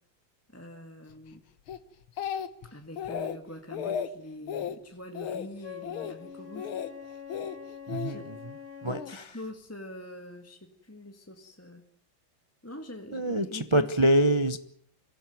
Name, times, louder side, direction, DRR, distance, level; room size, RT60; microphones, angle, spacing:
voice 1, 0.5-1.4 2.7-6.7 8.0-8.3 8.8-11.9 12.6-13.9, left 1 dB, 5° left, 4 dB, 1.7 m, -44 dB
Speech, 1.7-2.7 3.0-3.4 3.7-4.1 4.5-4.8 5.1-5.5 5.8-6.1 6.6-6.9 7.3-8.1 8.9-9.1, left 8 dB, 75° left, 2.0 m, -34 dB
Wind instrument woodwind instrument, 5.6-9.1, left 8 dB, 25° left, 3.0 m, -44 dB
voice 2, 7.9-8.2 8.8-9.2 13.1-14.6, right 1 dB, 45° right, 11 dB, 0.3 m, -25 dB
25.0 x 16.5 x 9.3 m, 0.66 s
omnidirectional pair, 2.3 m